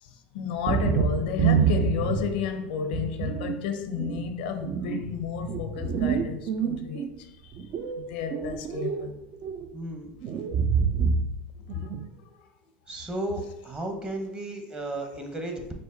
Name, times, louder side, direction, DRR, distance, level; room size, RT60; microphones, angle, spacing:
voice 1, 0.0-7.6 8.0-9.2 11.7-11.9 12.2-12.3, left 7 dB, 75° left, 0.5 m, -32 dB
sound 1, 0.6-2.5 2.9-3.6 4.0-7.1 7.5-9.1 9.3-9.7 10.2-11.4 11.7-12.1, right 6 dB, 50° right, 0.4 m, -27 dB
voice 2, 9.7-10.2 12.9-15.7, right 1 dB, 20° right, 0.9 m, -34 dB
5.3 x 2.1 x 3.8 m
hypercardioid pair, 90°, 5 cm